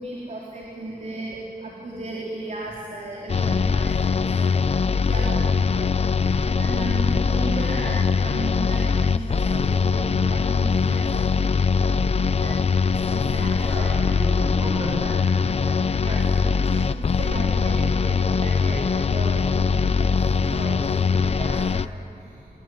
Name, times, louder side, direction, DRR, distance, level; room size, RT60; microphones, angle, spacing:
voice 1, 0.0-4.5 5.0-12.6 13.0-14.0 16.0-21.5, right 2 dB, 50° right, -3 dB, 4.2 m, -35 dB
sound 1, 3.3-21.9, left 5 dB, 40° left, 0.6 m, -22 dB
voice 2, 13.5-16.6 19.9-20.0 21.3-21.7, equal, 25° right, -4 dB, 6.8 m, -35 dB
sound 2, 16.1-21.5, left 1 dB, 15° left, 4.1 m, -45 dB
26.5 x 22.5 x 9.8 m, 2.9 s
wide cardioid pair, 135°, 16 cm